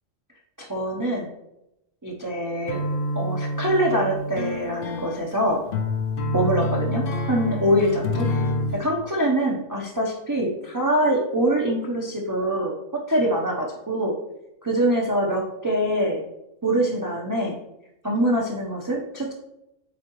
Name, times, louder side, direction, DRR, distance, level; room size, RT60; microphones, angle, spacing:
voice 1, 0.6-1.3 2.0-2.8 3.1-5.6 6.3-8.3 8.7-14.1 14.6-16.2 16.6-17.6 18.0-19.3, right 1 dB, 20° right, -2 dB, 0.6 m, -24 dB
sound 1, 2.7-8.8, left 1 dB, 50° left, 0.7 m, -27 dB
8.1 x 3.8 x 3.0 m, 0.87 s
omnidirectional pair, 1.4 m